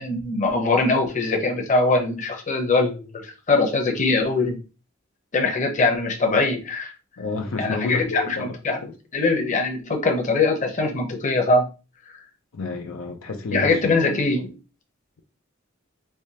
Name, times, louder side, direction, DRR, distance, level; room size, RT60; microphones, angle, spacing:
voice 1, 0.0-4.6 5.3-6.9 7.6-8.8 9.1-11.6 13.5-14.5, left 3 dB, 35° left, 0.8 m, -22 dB
voice 2, 7.2-8.6 8.8-8.9 12.5-14.0 14.3-14.4, left 3 dB, 85° left, 0.6 m, -30 dB
3.4 x 3.1 x 2.8 m
head